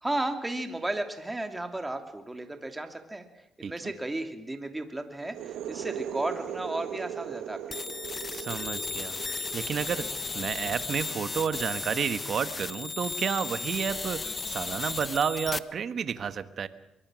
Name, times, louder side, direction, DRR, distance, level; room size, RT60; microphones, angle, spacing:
voice 1, 0.0-7.9, right 2 dB, 15° right, 6 dB, 2.8 m, -34 dB
sound 1, 5.2-12.8, right 10 dB, 85° right, 1.1 m, -40 dB
sound 2, 7.7-15.6, left 4 dB, 30° left, 0.9 m, -35 dB
voice 2, 8.3-10.1 10.3-16.7, right 7 dB, 55° right, 12 dB, 1.5 m, -31 dB
24.0 x 22.5 x 6.4 m, 0.85 s
cardioid pair, 90°, 0 cm